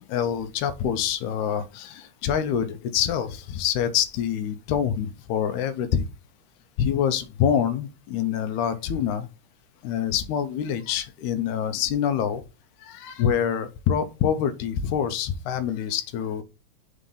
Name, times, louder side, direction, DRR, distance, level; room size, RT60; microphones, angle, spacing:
voice 1, 0.1-6.1 6.8-9.3 9.8-12.4 12.8-16.4, left 9 dB, 80° left, 2.0 m, -26 dB
5.5 x 3.7 x 5.4 m
omnidirectional pair, 3.7 m